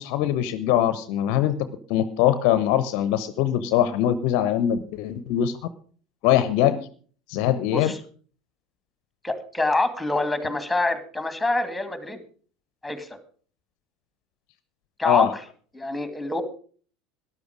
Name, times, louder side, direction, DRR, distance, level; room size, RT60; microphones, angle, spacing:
voice 1, 0.0-5.6 6.2-6.9 7.3-7.9 15.0-15.3, left 11 dB, 55° left, 14 dB, 0.8 m, -22 dB
voice 2, 9.2-12.2 12.8-13.2 15.0-15.4 15.7-16.4, left 2 dB, 5° left, 11 dB, 2.2 m, -26 dB
13.0 x 11.0 x 5.0 m, 0.43 s
figure-of-eight pair, 75°, 0 cm